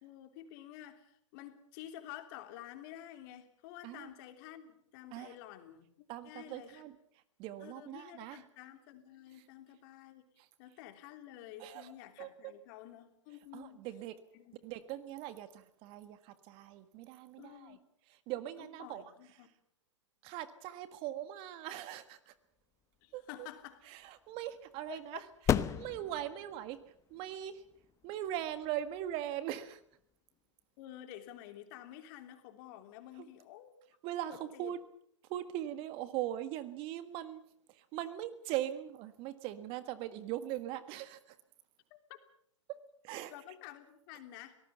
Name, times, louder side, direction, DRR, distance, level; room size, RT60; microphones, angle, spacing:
voice 1, 0.0-6.8 7.6-10.2 10.6-13.8 14.3-14.6 17.4-17.8 18.6-19.5 23.0-23.8 24.9-25.2 25.7-25.8 30.8-33.7 34.3-34.7 42.1-42.2 43.3-44.5, left 12 dB, 40° left, 7 dB, 3.2 m, -50 dB
voice 2, 6.1-6.9 7.4-8.4 11.6-11.9 12.2-12.5 13.5-14.1 14.6-17.7 18.3-19.0 20.2-22.3 23.1-23.5 23.9-25.2 25.7-26.8 27.1-27.6 28.0-29.8 33.2-33.3 34.0-34.8 35.3-37.4 37.9-41.4 43.0-43.3, right 12 dB, 35° right, 12 dB, 1.6 m, -40 dB
sound 1, 22.8-30.1, left 9 dB, 20° left, 0.9 m, -39 dB
25.0 x 18.5 x 7.0 m, 0.68 s
figure-of-eight pair, 110°, 16 cm